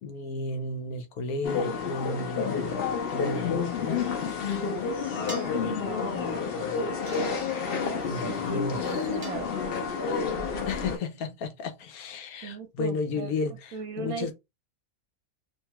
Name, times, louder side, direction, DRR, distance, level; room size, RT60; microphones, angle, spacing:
voice 1, 0.0-2.8 3.1-4.1 8.0-9.2 10.7-14.3, left 3 dB, 90° left, 1.1 m, -33 dB
sound 1, 1.4-11.0, left 5 dB, 55° left, 0.7 m, -30 dB
voice 2, 5.1-5.6 5.9-6.4 7.7-9.8 12.4-13.3 13.7-14.3, right 6 dB, 80° right, 1.0 m, -39 dB
sound 2, 5.3-5.7 7.1-7.8 9.2-10.0, right 2 dB, 35° right, 0.5 m, -44 dB
2.8 x 2.2 x 2.9 m
omnidirectional pair, 1.5 m